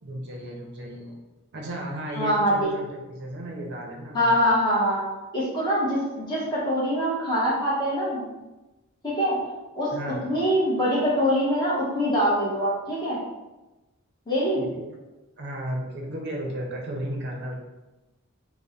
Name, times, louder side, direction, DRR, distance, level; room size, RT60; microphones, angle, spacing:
voice 1, 0.0-1.2 1.5-4.4 9.9-10.3 14.6-15.0 15.4-17.6, right 1 dB, 50° right, 0 dB, 0.5 m, -34 dB
voice 2, 2.2-2.5 4.1-5.0 5.3-8.4 9.0-9.4 9.8-9.9 10.2-13.2 14.3-14.6, equal, 20° left, -7 dB, 0.8 m, -24 dB
3.4 x 2.0 x 4.0 m, 1.1 s
head